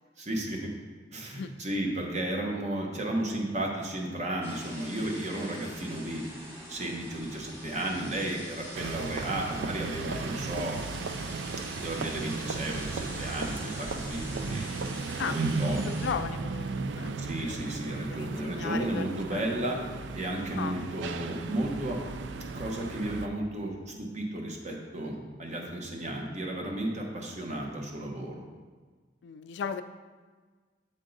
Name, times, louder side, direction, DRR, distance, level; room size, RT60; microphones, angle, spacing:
voice 1, 0.2-0.7 1.1-6.2 6.7-10.8 11.8-14.7 15.2-15.8 17.2-19.8 20.1-22.0 22.3-28.4, right 1 dB, 40° right, 0 dB, 1.0 m, -33 dB
voice 2, 1.2-1.5 15.2-17.2 18.1-19.5 20.6-20.8 29.2-29.8, left 6 dB, 85° left, 10 dB, 0.3 m, -36 dB
sound 1, 4.4-16.1, equal, 15° right, 1.9 m, -45 dB
sound 2, 8.7-23.3, right 4 dB, 85° right, 0.4 m, -35 dB
7.6 x 3.6 x 3.9 m, 1.4 s
head